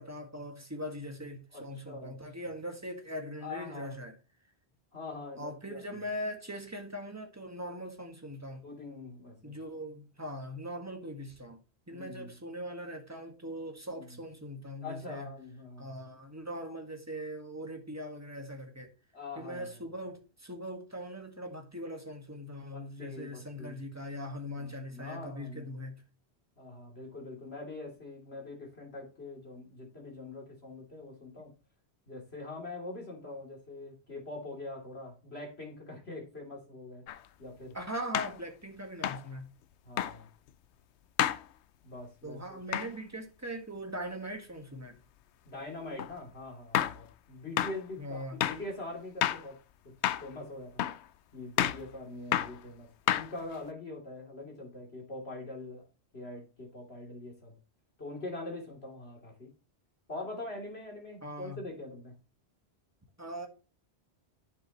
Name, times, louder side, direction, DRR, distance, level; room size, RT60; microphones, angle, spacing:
voice 1, 0.0-4.1 5.4-8.6 9.4-11.6 11.9-15.3 15.8-18.9 19.4-25.9 37.7-39.5 42.2-45.0 48.0-48.4 61.2-61.6 63.2-63.5, equal, 15° right, 1.7 m, -41 dB
voice 2, 1.5-2.2 3.4-4.0 4.9-6.0 8.6-9.6 11.9-12.4 13.8-14.2 14.8-16.0 19.1-19.8 22.7-23.8 24.6-25.7 26.6-31.5 32.1-37.0 37.4-37.8 39.8-40.3 41.8-42.6 45.5-49.6 49.8-49.9 50.2-50.8 51.3-55.9 56.1-57.5 58.0-59.5 60.1-62.2, left 2 dB, 70° left, 3.4 m, -43 dB
sound 1, 37.1-37.2 38.1-38.4 39.0-39.3 40.0-40.2 41.2-41.4 42.7-42.9 46.0-46.1 46.7-47.0 47.6-47.8 48.4-48.7 49.2-49.5 50.0-50.3 50.8-51.0 51.6-51.8 52.3-52.6 53.1-53.6, left 11 dB, 85° left, 0.9 m, -29 dB
10.5 x 7.3 x 3.1 m
omnidirectional pair, 1.1 m